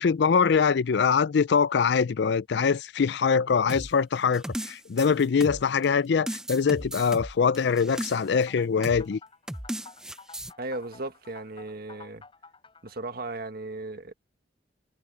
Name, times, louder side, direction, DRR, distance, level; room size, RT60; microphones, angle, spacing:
voice 1, 0.0-9.2, left 6 dB, 70° left, 0.4 m, -23 dB
sound 1, 3.7-5.9 6.3-8.4 8.8-9.1 9.5-10.5, equal, 5° right, 0.6 m, -36 dB
sound 2, 7.9-13.1, left 4 dB, 30° left, 5.2 m, -50 dB
voice 2, 10.6-12.2 12.8-14.1, right 2 dB, 55° right, 1.6 m, -36 dB
head